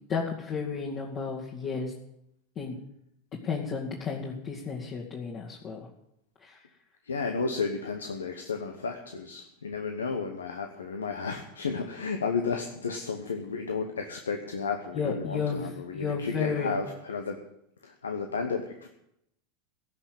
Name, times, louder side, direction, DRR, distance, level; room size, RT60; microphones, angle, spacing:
voice 1, 0.1-1.9 2.6-2.8 3.4-5.8 6.4-6.6 14.9-16.7, left 5 dB, 40° left, -4 dB, 2.3 m, -32 dB
voice 2, 7.0-17.4 17.8-18.9, left 5 dB, 80° left, 5 dB, 1.0 m, -33 dB
16.5 x 6.1 x 9.0 m, 0.80 s
figure-of-eight pair, 80°, 0 cm